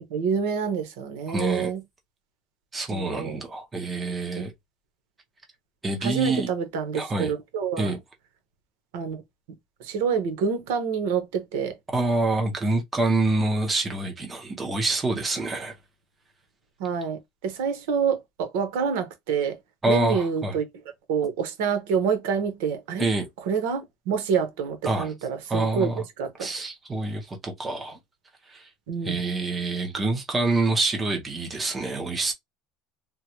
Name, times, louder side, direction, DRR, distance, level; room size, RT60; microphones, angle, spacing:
voice 1, 0.1-1.8 2.9-3.4 6.0-7.9 8.9-9.2 9.8-11.8 16.8-19.6 19.9-20.6 21.1-23.1 23.4-25.9 26.2-26.5 28.9-29.2, right 6 dB, 85° right, 0.9 m, -27 dB
voice 2, 1.3-1.7 2.7-4.5 5.8-6.5 6.9-7.3 7.8-8.0 11.9-15.7 19.8-20.6 23.0-23.2 24.8-25.1 25.5-26.0 26.4-28.0 28.5-28.7 29.0-32.3, right 2 dB, 10° right, 0.7 m, -26 dB
3.6 x 2.1 x 2.9 m
cardioid pair, 175°, 0 cm